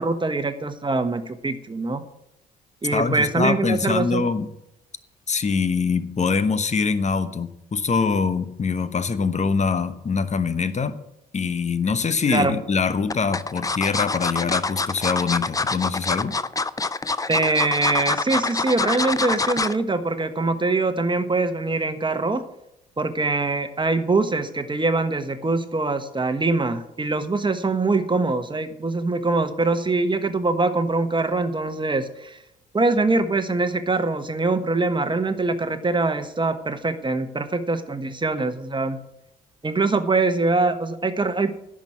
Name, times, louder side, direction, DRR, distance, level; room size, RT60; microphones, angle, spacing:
voice 1, 0.0-2.0 2.8-4.2 12.3-12.5 17.3-22.4 23.0-32.4 32.7-39.0 39.6-41.5, right 3 dB, 25° right, 9 dB, 1.3 m, -23 dB
voice 2, 2.9-4.5 5.3-11.0 11.3-16.3, left 5 dB, 35° left, 12 dB, 1.0 m, -24 dB
sound 1, 11.9-12.4 13.1-19.8 20.2-20.4 20.7-20.8, left 3 dB, 15° left, 0.6 m, -25 dB
10.5 x 6.3 x 7.4 m, 0.83 s
hypercardioid pair, 50°, 21 cm